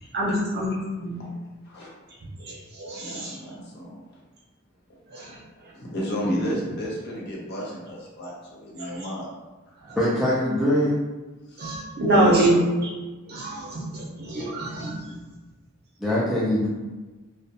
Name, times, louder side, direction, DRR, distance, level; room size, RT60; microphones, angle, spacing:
voice 1, 0.1-0.7 1.0-1.3 2.4-3.4 5.1-5.3 8.8-9.1 9.8-10.0 11.6-12.9 13.3-14.9, right 1 dB, 50° right, -4 dB, 0.6 m, -25 dB
voice 2, 2.9-3.9 5.7-9.3 11.5-11.8 12.1-12.7 14.0-14.1, equal, 50° left, -4 dB, 0.6 m, -32 dB
voice 3, 10.0-11.0 16.0-16.7, left 1 dB, ahead, -8 dB, 0.4 m, -22 dB
2.3 x 2.1 x 2.7 m, 1.2 s
head